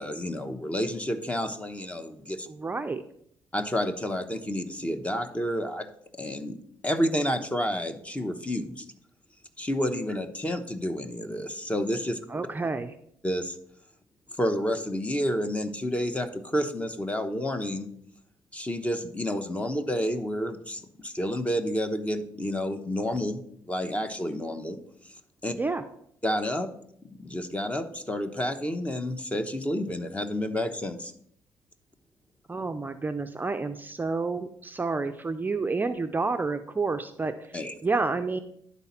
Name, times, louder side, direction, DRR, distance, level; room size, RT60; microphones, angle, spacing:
voice 1, 0.0-2.5 3.5-5.9 6.2-6.6 6.8-8.8 9.6-12.2 13.2-13.6 14.4-17.9 18.5-24.8 25.4-25.5 26.2-26.7 27.2-31.1 37.5-37.7, equal, 15° left, 8 dB, 1.0 m, -30 dB
voice 2, 2.5-3.0 12.3-12.9 25.5-25.8 32.5-37.5 37.8-38.4, right 3 dB, 20° right, 7 dB, 0.6 m, -29 dB
11.0 x 4.1 x 5.8 m, 0.68 s
cardioid pair, 80°, 8 cm